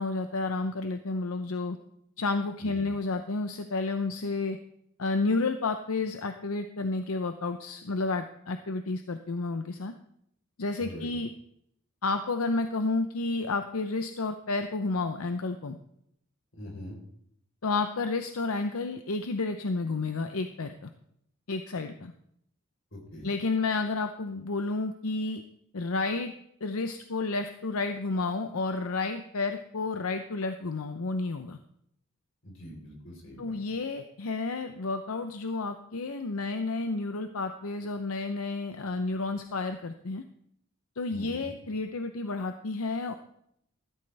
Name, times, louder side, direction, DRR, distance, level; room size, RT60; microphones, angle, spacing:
voice 1, 0.0-1.8 2.2-4.6 5.0-9.9 10.6-11.3 12.0-15.8 17.6-20.9 21.5-22.1 23.2-25.4 25.7-26.3 26.6-31.6 33.4-40.2 41.0-43.1, left 3 dB, 85° left, 7 dB, 0.7 m, -31 dB
voice 2, 10.8-11.1 16.5-17.0 22.9-23.3 32.4-33.6 41.1-41.5, equal, 60° left, 1 dB, 4.0 m, -43 dB
14.0 x 13.0 x 3.4 m, 0.71 s
head